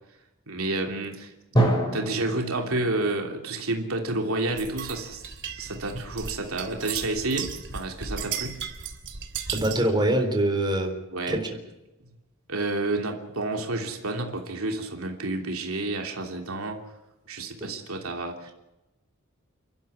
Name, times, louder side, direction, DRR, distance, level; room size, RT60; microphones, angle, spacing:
voice 1, 0.5-1.6 1.9-5.2 5.5-8.6 11.1-11.4 12.5-16.8 17.3-18.5, right 2 dB, 80° right, 3 dB, 3.1 m, -30 dB
Drum, 1.6-5.3, right 1 dB, 20° left, 7.2 m, -28 dB
sound 1, 4.6-9.9, right 6 dB, 60° right, 3.2 m, -36 dB
voice 2, 9.5-11.6 17.6-17.7, right 1 dB, 20° right, 3 dB, 4.0 m, -25 dB
29.5 x 12.5 x 9.7 m, 0.99 s
head